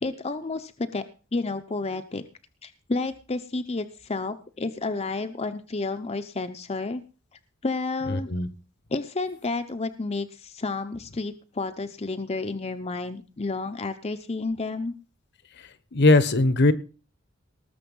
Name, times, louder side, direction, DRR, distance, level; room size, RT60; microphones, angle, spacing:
voice 1, 0.0-1.0 1.3-2.2 2.6-7.0 7.6-8.3 8.9-14.9, left 3 dB, 30° left, 9 dB, 0.8 m, -31 dB
voice 2, 8.1-8.5 15.9-16.7, left 2 dB, 60° left, 14 dB, 1.2 m, -19 dB
19.0 x 7.0 x 5.5 m, 0.36 s
head